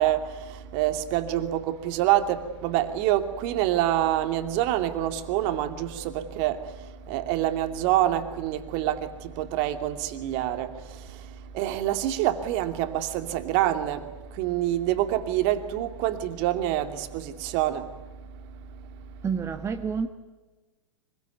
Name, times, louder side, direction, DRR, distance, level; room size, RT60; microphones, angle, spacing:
voice 1, 0.0-17.9, right 13 dB, 45° right, 2.7 m, -27 dB
voice 2, 19.2-20.1, right 6 dB, 15° right, 1.5 m, -28 dB
25.0 x 23.5 x 9.3 m
figure-of-eight pair, 100°, 16 cm